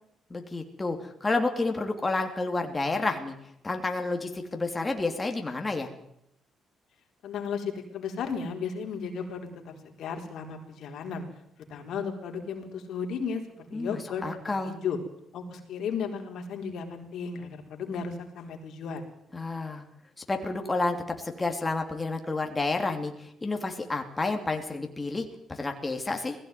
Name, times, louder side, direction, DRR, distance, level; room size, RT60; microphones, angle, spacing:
voice 1, 0.3-3.3 3.6-5.9 13.7-14.8 19.3-19.8 20.3-26.4, left 3 dB, 20° left, 4 dB, 3.0 m, -30 dB
voice 2, 7.2-11.2 11.7-13.4 13.7-14.4 14.7-15.0 15.3-19.0, left 6 dB, 75° left, 4 dB, 4.1 m, -34 dB
19.5 x 16.0 x 9.3 m, 0.77 s
cardioid pair, 90°, 0 cm